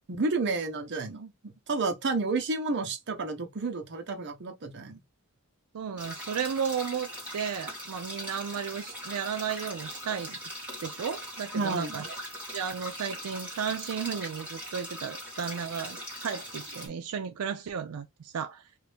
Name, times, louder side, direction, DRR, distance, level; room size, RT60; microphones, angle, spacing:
voice 1, 0.1-5.0 11.5-12.0, right 3 dB, 55° right, 0.7 m, -31 dB
voice 2, 5.7-10.4 10.8-12.1 12.5-18.7, right 7 dB, 85° right, 0.4 m, -34 dB
sound 1, 6.0-16.9, equal, 5° right, 1.5 m, -40 dB
2.6 x 2.6 x 3.3 m
head